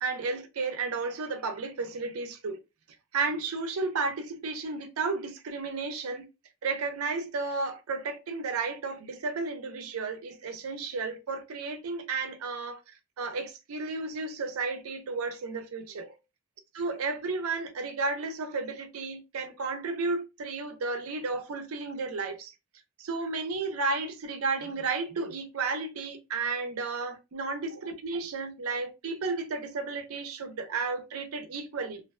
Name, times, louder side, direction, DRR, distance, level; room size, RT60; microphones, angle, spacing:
voice 1, 0.0-2.6 3.1-6.2 6.6-12.8 13.2-16.2 16.8-22.5 23.0-32.0, right 4 dB, 85° right, 0.5 m, -33 dB
2.5 x 2.0 x 2.4 m
head